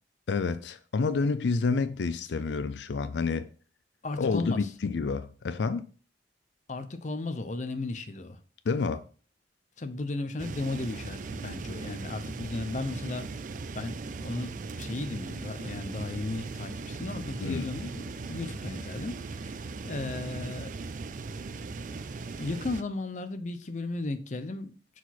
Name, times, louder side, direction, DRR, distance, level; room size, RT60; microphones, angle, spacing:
voice 1, 0.3-3.5 4.2-5.9 8.7-9.0 17.4-17.7, left 4 dB, 85° left, 0.4 m, -29 dB
voice 2, 4.0-4.7 6.7-8.4 9.8-13.3 13.7-20.7 22.4-24.8, left 2 dB, 45° left, 0.6 m, -35 dB
sound 1, 10.4-22.8, right 3 dB, 45° right, 0.4 m, -38 dB
6.0 x 4.8 x 4.2 m
head